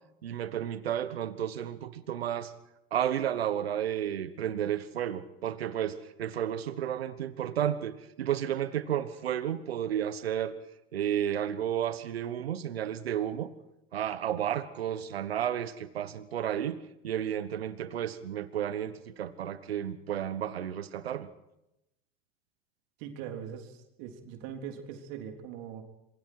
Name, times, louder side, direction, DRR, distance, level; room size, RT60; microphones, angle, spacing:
voice 1, 0.2-2.5 2.9-10.5 10.9-13.5 13.9-21.3, right 10 dB, 90° right, 14 dB, 1.2 m, -32 dB
voice 2, 23.0-25.8, right 8 dB, 65° right, 4 dB, 3.7 m, -41 dB
27.5 x 22.5 x 4.7 m, 0.88 s
hypercardioid pair, 85°, 30 cm